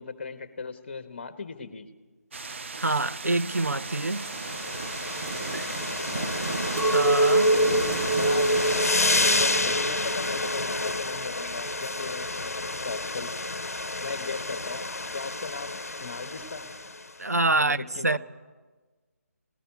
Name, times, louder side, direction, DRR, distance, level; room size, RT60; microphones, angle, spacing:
voice 1, 0.0-1.9 6.0-6.4 7.5-8.5 9.2-13.3 14.0-14.9 15.1-16.7 17.6-18.2, left 4 dB, 40° left, 1.7 m, -37 dB
sound 1, 2.3-8.9, right 4 dB, 50° right, 1.2 m, -34 dB
voice 2, 2.8-4.3 5.5-5.7 6.9-7.5 17.2-18.2, right 2 dB, 80° right, 0.8 m, -26 dB
sound 2, 3.9-17.1, left 2 dB, 65° left, 1.1 m, -30 dB
Chink clink, 6.8-11.1 11.5-12.1, right 1 dB, 10° right, 2.1 m, -25 dB
27.5 x 19.0 x 7.0 m
figure-of-eight pair, 150°, 8 cm